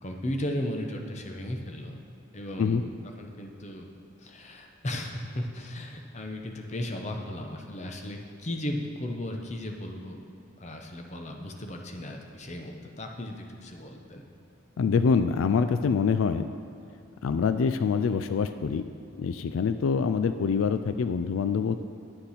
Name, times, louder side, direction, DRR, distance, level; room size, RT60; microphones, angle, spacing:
voice 1, 0.0-2.0 2.3-2.8 3.2-3.9 4.2-10.2 10.6-14.3, left 1 dB, 35° left, 3 dB, 0.8 m, -35 dB
voice 2, 14.8-16.5 17.2-18.8 19.2-21.8, left 5 dB, 85° left, 10 dB, 0.3 m, -25 dB
9.8 x 6.7 x 5.7 m, 2.6 s
head